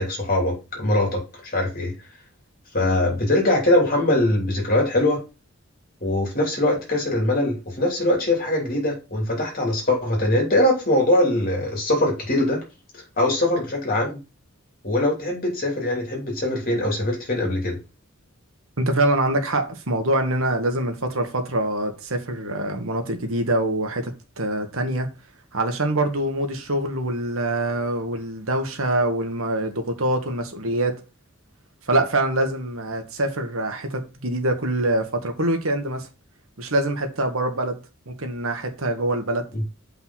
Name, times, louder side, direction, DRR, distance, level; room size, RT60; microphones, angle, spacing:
voice 1, 0.0-1.9 2.7-5.2 6.0-12.6 13.2-14.2 14.8-17.8 39.5-39.6, left 1 dB, 45° left, 3.1 m, -22 dB
voice 2, 18.8-25.1 25.5-31.0 31.8-36.1 36.6-37.8 38.1-39.5, right 1 dB, 80° right, 1.6 m, -24 dB
7.5 x 5.4 x 4.2 m
head